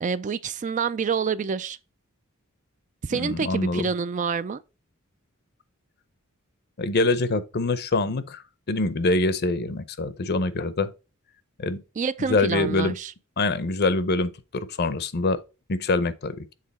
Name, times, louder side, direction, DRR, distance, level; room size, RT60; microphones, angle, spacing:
voice 1, 0.0-1.8 3.0-4.6 12.0-13.1, right 5 dB, 35° right, 0.3 m, -27 dB
voice 2, 3.1-3.8 6.8-8.4 8.7-10.9 11.6-11.8 12.3-12.9 13.4-15.4 15.7-16.4, left 2 dB, 50° left, 0.7 m, -24 dB
7.5 x 3.8 x 4.1 m
head